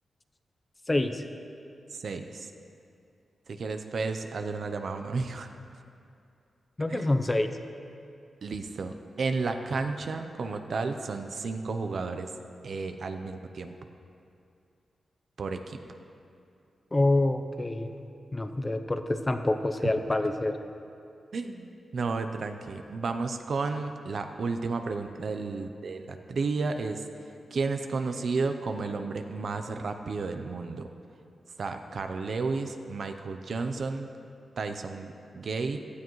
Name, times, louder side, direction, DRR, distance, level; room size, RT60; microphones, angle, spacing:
voice 1, 0.9-1.3 6.8-7.5 16.9-17.9 18.3-20.6, left 2 dB, 20° left, 8 dB, 0.6 m, -26 dB
voice 2, 1.9-2.5 3.5-5.5 6.9-7.1 8.4-12.3 12.6-13.7 15.4-15.8 19.8-19.9 21.3-27.0 27.5-30.9 31.6-34.1 34.6-35.8, right 4 dB, 60° right, 6 dB, 0.7 m, -32 dB
16.5 x 13.0 x 3.1 m, 2.5 s
wide cardioid pair, 125°, 0 cm